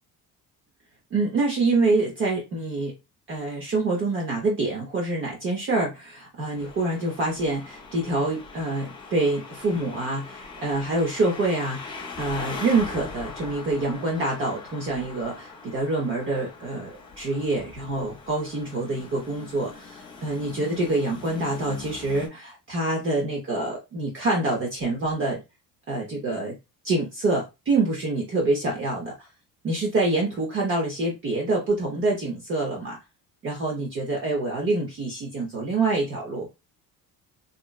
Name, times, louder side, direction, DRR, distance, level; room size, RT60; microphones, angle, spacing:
voice 1, 1.1-2.9 3.3-25.4 25.9-26.6 26.8-29.3 29.6-33.0 33.4-36.5, right 2 dB, 35° right, 0.6 m, -26 dB
sound 1, 6.5-22.3, left 4 dB, 15° left, 0.4 m, -41 dB
3.7 x 2.0 x 2.2 m
cardioid pair, 175°, 35 cm